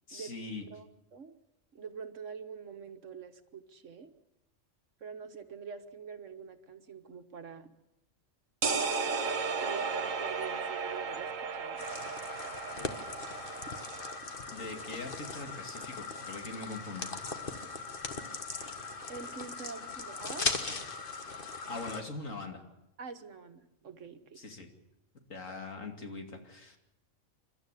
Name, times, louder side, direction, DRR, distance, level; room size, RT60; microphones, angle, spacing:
voice 1, 0.1-0.7 14.5-17.1 21.7-22.6 24.4-24.7 25.3-26.8, left 3 dB, 80° left, 3 dB, 3.0 m, -42 dB
voice 2, 0.7-1.4 1.7-4.1 5.0-7.7 9.6-11.9 19.1-20.5 23.0-24.4, right 6 dB, 70° right, 8 dB, 1.7 m, -45 dB
sound 1, 8.6-14.2, right 5 dB, 85° right, 1.7 m, -34 dB
sound 2, 11.8-22.0, left 4 dB, 45° left, 1.6 m, -39 dB
28.0 x 13.0 x 8.4 m, 0.89 s
omnidirectional pair, 1.3 m